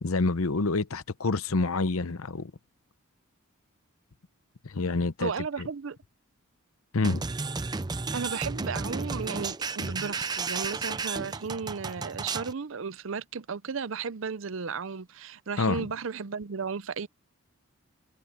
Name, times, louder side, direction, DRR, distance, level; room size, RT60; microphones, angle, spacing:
voice 1, 0.0-2.5 4.6-5.3 5.6-5.7 6.9-7.2 15.6-15.9, left 3 dB, 75° left, 0.8 m, -27 dB
voice 2, 5.2-6.0 8.1-17.1, right 5 dB, 60° right, 0.6 m, -34 dB
sound 1, 7.0-12.5, right 4 dB, 20° right, 0.5 m, -33 dB
head